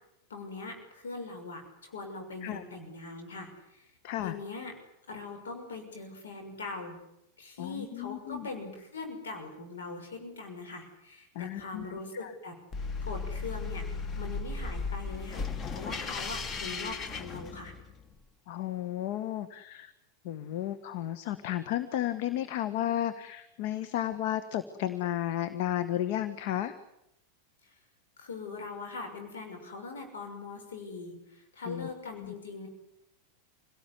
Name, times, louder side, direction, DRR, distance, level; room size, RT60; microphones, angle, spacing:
voice 1, 0.3-3.9 4.2-4.7 5.1-7.0 7.4-12.6 13.0-13.8 14.1-15.5 15.7-17.7 28.2-32.7, left 3 dB, 65° left, 5 dB, 6.3 m, -41 dB
voice 2, 4.0-4.4 7.6-8.5 11.3-11.9 12.2-12.3 18.5-19.9 20.2-26.7 31.7-31.9 32.2-32.3, left 12 dB, 50° left, 12 dB, 1.6 m, -33 dB
sound 1, 12.7-18.0, left 4 dB, 25° left, 2.1 m, -36 dB
27.5 x 18.0 x 9.9 m, 0.85 s
figure-of-eight pair, 90°, 0 cm